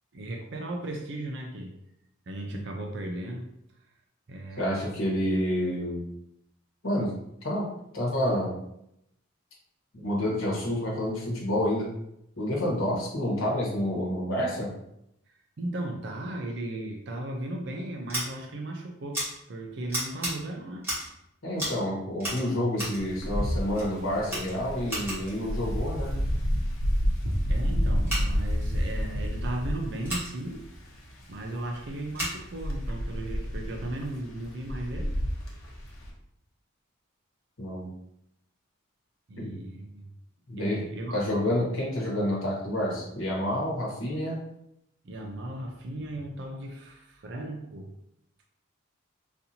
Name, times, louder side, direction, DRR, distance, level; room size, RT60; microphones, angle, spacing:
voice 1, 0.1-1.7 2.3-3.5 4.3-4.9 15.3-19.2 19.5-20.9 27.5-30.7 31.3-35.1 39.3-40.1 40.6-41.2 45.0-47.9, right 1 dB, 55° right, 1 dB, 0.5 m, -36 dB
voice 2, 4.6-6.1 6.8-7.1 7.4-7.7 7.9-8.6 9.9-11.9 12.4-14.7 21.4-26.2 37.6-37.9 39.4-39.6 40.5-40.9 41.1-44.4, left 1 dB, 70° left, -3 dB, 1.2 m, -28 dB
Scissors, 18.1-18.2 19.1-19.3 19.9-20.3 20.8-21.1 21.5-21.8 22.2-23.0 23.7-23.9 24.2-25.3 28.0-28.2 30.0-30.3 32.1-32.4, right 1 dB, 10° right, 1.2 m, -33 dB
Wind, 23.0-36.1, equal, 90° left, 0.8 m, -30 dB
4.1 x 2.7 x 2.8 m, 0.79 s
head